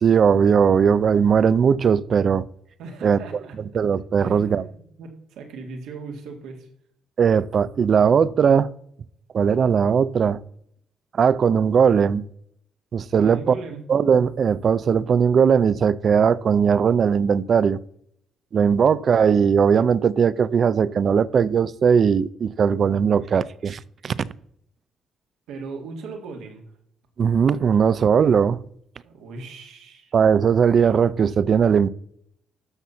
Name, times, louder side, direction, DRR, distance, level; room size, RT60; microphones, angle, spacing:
voice 1, 0.0-2.4 3.0-3.2 3.7-4.6 7.2-8.7 9.3-10.4 11.2-12.2 12.9-13.5 13.9-17.8 18.5-24.2 27.2-28.6 30.1-31.9, right 7 dB, 50° right, 0.5 m, -19 dB
voice 2, 2.8-3.5 4.2-6.7 13.2-13.9 25.5-26.6 29.0-30.1, right 4 dB, 90° right, 2.0 m, -38 dB
12.5 x 4.2 x 7.0 m
cardioid pair, 90°, 0 cm